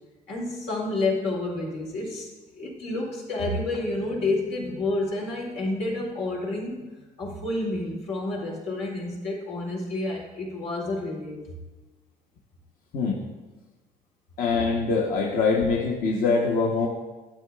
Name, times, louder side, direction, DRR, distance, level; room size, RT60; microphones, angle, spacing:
voice 1, 0.3-2.3 2.6-6.9 7.2-11.4, left 2 dB, 90° left, -3 dB, 2.4 m, -29 dB
voice 2, 14.4-16.9, left 4 dB, 60° left, -1 dB, 0.9 m, -23 dB
11.5 x 7.5 x 2.3 m, 1.2 s
cardioid pair, 110°, 17 cm